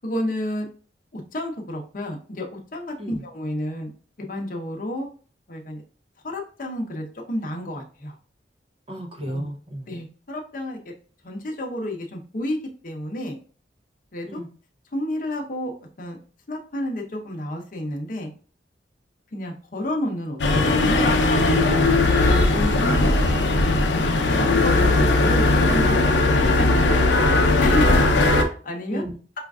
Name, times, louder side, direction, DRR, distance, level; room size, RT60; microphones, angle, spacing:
voice 1, 0.0-0.7 1.1-3.9 4.3-5.1 5.5-5.8 6.2-8.1 9.3-9.5 9.9-10.9 11.2-12.6 12.8-13.4 14.1-14.4 14.9-16.2 16.5-18.3 19.3-21.7 22.8-23.1 24.3-26.1 26.4-27.3 27.6-29.0, left 1 dB, 50° left, 1 dB, 0.7 m, -30 dB
voice 2, 8.9-9.9 14.3-14.4 22.5-23.3 28.9-29.2, equal, 35° right, 2 dB, 0.6 m, -31 dB
sound 1, 20.4-28.4, left 2 dB, 85° left, 0.5 m, -18 dB
5.0 x 2.4 x 2.3 m, 0.39 s
head